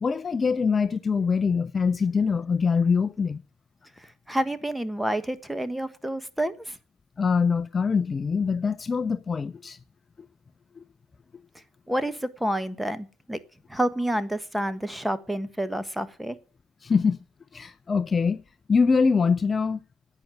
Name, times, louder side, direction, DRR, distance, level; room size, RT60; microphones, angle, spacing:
voice 1, 0.0-3.4 7.2-9.8 10.8-10.9 16.8-17.2 17.5-18.4 18.7-19.8, left 5 dB, 30° left, 0.6 m, -24 dB
voice 2, 4.0-6.8 11.9-13.4 13.7-16.4, right 1 dB, 5° right, 1.4 m, -29 dB
10.5 x 9.3 x 7.9 m
hypercardioid pair, 70°, 0 cm